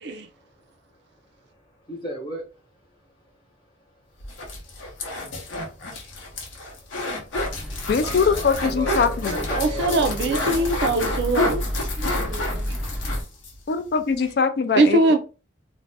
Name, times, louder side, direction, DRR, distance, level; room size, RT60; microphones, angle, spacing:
voice 1, 0.1-2.6 3.0-3.1 3.6-3.7 5.1-5.7 6.1-7.1 8.0-10.8, right 1 dB, 20° left, 1.0 m, -37 dB
sound 1, 4.2-13.6 13.9-14.0 14.2-14.3, left 2 dB, 80° left, 0.8 m, -30 dB
sound 2, 7.3-13.2, equal, ahead, 0.7 m, -31 dB
voice 2, 7.9-9.4 13.7-15.0, left 5 dB, 55° left, 0.4 m, -22 dB
voice 3, 9.5-11.6 12.0-12.8 14.8-15.2, right 2 dB, 60° right, 0.4 m, -22 dB
2.5 x 2.1 x 3.3 m
head